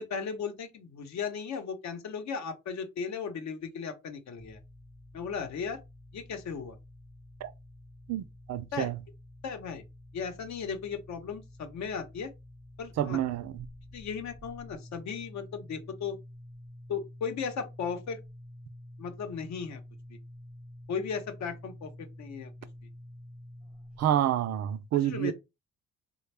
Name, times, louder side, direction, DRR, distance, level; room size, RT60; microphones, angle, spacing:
voice 1, 0.0-4.6 5.1-5.8 6.1-6.8 8.7-8.9 9.4-9.8 10.1-12.3 12.8-13.2 13.9-16.2 16.9-18.2 19.0-19.8 20.1-20.2 20.9-22.5 25.1-25.3, left 6 dB, 65° left, 0.8 m, -36 dB
sound 1, 4.4-24.0, left 1 dB, 5° right, 0.4 m, -49 dB
voice 2, 8.1-9.0 13.0-13.7 24.0-25.3, right 11 dB, 60° right, 0.5 m, -29 dB
3.3 x 2.3 x 3.2 m
cardioid pair, 90°, 30 cm